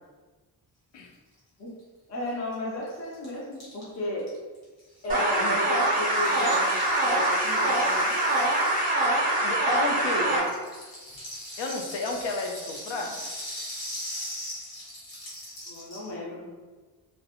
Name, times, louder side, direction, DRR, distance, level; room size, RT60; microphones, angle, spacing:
voice 1, 2.1-4.3 5.0-6.7 7.0-8.2 9.9-10.5 15.7-16.5, left 1 dB, 40° left, -5 dB, 0.4 m, -34 dB
Rattle (instrument), 2.3-2.4 2.5-2.6 2.8-9.9 10.3-16.1, left 1 dB, 65° left, 1.1 m, -40 dB
sound 1, 5.1-10.4, right 1 dB, 20° right, 0.4 m, -24 dB
voice 2, 9.4-10.3 11.6-13.2, left 3 dB, 85° left, 3 dB, 0.5 m, -32 dB
2.4 x 2.1 x 2.8 m, 1.3 s
wide cardioid pair, 180°, 42 cm